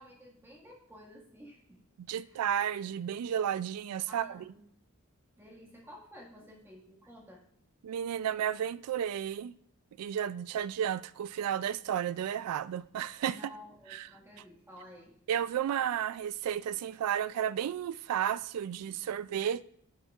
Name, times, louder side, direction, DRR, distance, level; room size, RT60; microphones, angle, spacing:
voice 1, 0.0-1.8 2.3-2.4 4.1-4.6 5.4-7.4 13.3-15.1, equal, 10° right, 1.7 m, -52 dB
voice 2, 2.1-4.4 7.8-9.5 10.0-13.4 13.9-14.1 15.3-19.6, right 9 dB, 90° right, 0.3 m, -32 dB
9.5 x 8.0 x 2.4 m
head